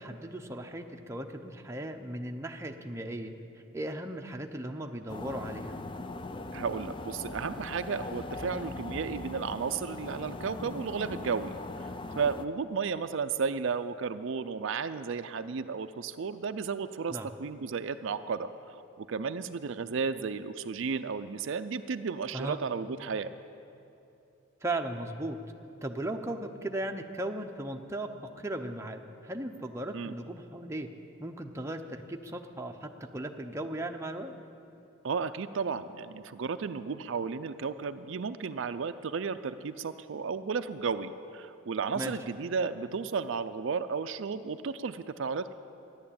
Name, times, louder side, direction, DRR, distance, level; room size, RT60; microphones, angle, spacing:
voice 1, 0.0-3.3 3.7-5.8 17.1-17.3 22.3-22.6 24.6-25.4 25.8-28.1 28.4-30.9 31.2-34.3 41.9-42.1, right 1 dB, 15° right, 3 dB, 0.7 m, -37 dB
sound 1, 5.1-12.5, left 2 dB, 25° left, 0.4 m, -40 dB
voice 2, 6.5-11.9 12.2-23.3 29.9-30.1 35.0-45.5, right 5 dB, 65° right, 10 dB, 0.4 m, -33 dB
14.0 x 11.0 x 8.6 m, 2.8 s
head